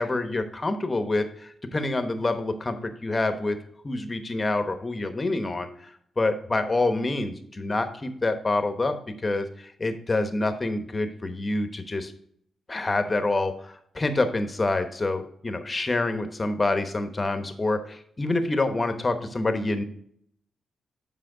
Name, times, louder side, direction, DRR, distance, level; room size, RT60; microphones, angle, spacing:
voice 1, 0.0-3.6 3.8-5.9 6.2-12.1 12.7-19.8, left 2 dB, 30° left, 8 dB, 1.0 m, -27 dB
7.7 x 5.3 x 3.8 m, 0.66 s
cardioid pair, 80°, 0 cm